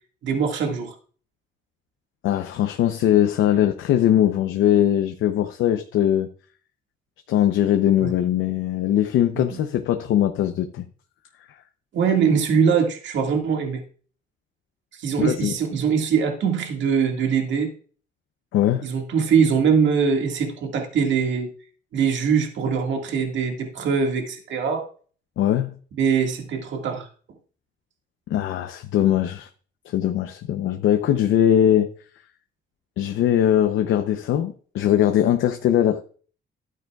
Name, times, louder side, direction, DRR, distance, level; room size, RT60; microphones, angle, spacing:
voice 1, 0.2-0.9 8.0-8.1 9.3-9.6 11.9-13.8 15.0-17.7 18.8-21.5 21.9-24.8 26.0-27.1, right 6 dB, 70° right, 1.9 m, -22 dB
voice 2, 2.2-6.3 7.3-10.8 15.2-15.5 18.5-18.9 25.4-25.7 28.3-29.5 29.9-31.9 33.0-36.1, left 11 dB, 80° left, 0.7 m, -21 dB
12.5 x 9.1 x 2.4 m
cardioid pair, 90°, 20 cm